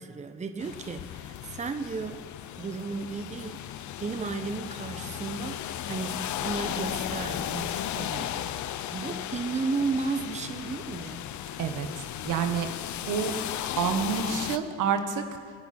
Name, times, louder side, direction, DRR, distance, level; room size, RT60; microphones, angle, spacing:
voice 1, 0.0-2.3 2.6-8.5 8.9-11.3, right 4 dB, 25° right, 9 dB, 0.7 m, -34 dB
sound 1, 0.6-14.6, left 11 dB, 70° left, 0.6 m, -35 dB
voice 2, 12.2-12.7 13.1-13.3 13.8-15.2, right 7 dB, 80° right, 7 dB, 1.3 m, -28 dB
23.5 x 8.6 x 4.2 m, 2.3 s
cardioid pair, 90°, 30 cm